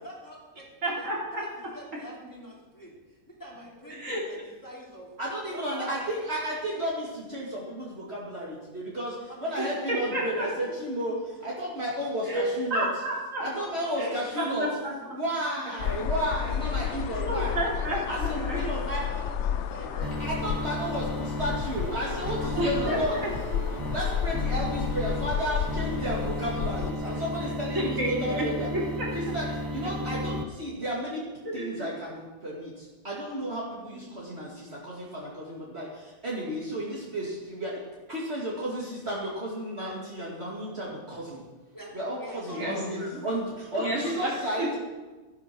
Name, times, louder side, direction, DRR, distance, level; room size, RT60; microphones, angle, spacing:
voice 1, 0.0-1.1 1.3-5.1 5.5-6.1 9.3-9.5 13.5-15.1 15.5-15.9 16.2-17.6 18.3-20.3 20.6-21.1 22.2-23.3 26.8-27.3 41.7-43.1 43.8-44.8, equal, 15° left, -4 dB, 3.2 m, -45 dB
voice 2, 0.8-1.4 3.9-4.3 9.6-10.5 12.3-13.4 13.9-14.1 14.4-14.9 17.2-18.6 22.6-23.6 27.7-29.1 31.4-31.9 33.9-34.0 42.5-43.2 43.7-44.8, right 1 dB, 65° right, -5 dB, 4.5 m, -31 dB
voice 3, 5.2-12.9 13.4-14.7 15.1-17.6 18.1-19.0 20.2-23.2 23.9-28.7 29.1-31.3 31.5-37.8 38.1-41.4 41.9-44.7, equal, 45° right, -5 dB, 2.7 m, -33 dB
sound 1, 15.8-26.9, left 8 dB, 65° left, 0.8 m, -32 dB
sound 2, 20.0-30.4, equal, 30° right, 0.4 m, -34 dB
14.0 x 10.5 x 6.3 m, 1.2 s
omnidirectional pair, 1.5 m